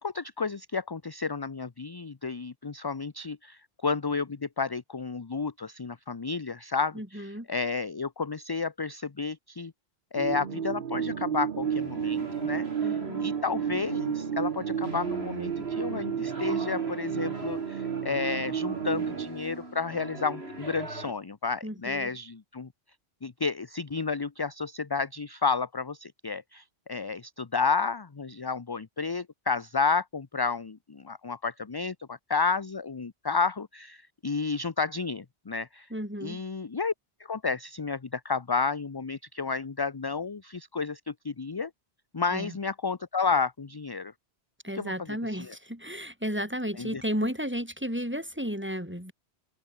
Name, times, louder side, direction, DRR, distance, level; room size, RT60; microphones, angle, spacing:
voice 1, 0.0-9.7 10.1-22.7 23.2-35.9 36.2-36.9 37.2-41.7 42.1-44.1 44.7-44.9 45.3-45.5 46.8-47.0, left 4 dB, 25° left, 0.6 m, -31 dB
voice 2, 6.9-7.5 12.8-13.3 21.6-22.1 35.9-36.4 42.3-42.5 44.6-49.1, equal, 10° right, 6.4 m, -33 dB
sound 1, 10.2-19.3, right 8 dB, 55° right, 0.9 m, -31 dB
sound 2, 11.6-21.1, right 2 dB, 70° right, 5.4 m, -42 dB
open air
omnidirectional pair, 1.1 m